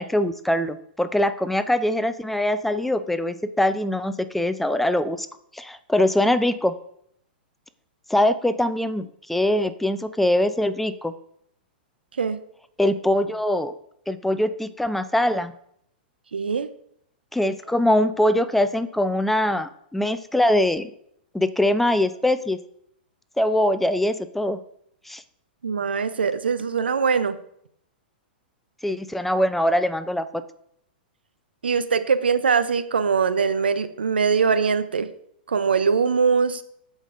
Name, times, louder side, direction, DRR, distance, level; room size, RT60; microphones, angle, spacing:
voice 1, 0.0-5.3 5.5-6.7 8.1-11.1 12.8-13.7 14.1-15.5 17.3-20.9 21.3-22.6 23.4-24.6 25.1-25.2 28.8-30.3, left 1 dB, 5° left, 11 dB, 0.5 m, -22 dB
voice 2, 16.3-16.7 25.6-27.4 31.6-35.1 35.5-36.6, right 5 dB, 85° right, 12 dB, 0.6 m, -22 dB
13.5 x 5.2 x 2.6 m, 0.70 s
hypercardioid pair, 115°, 5 cm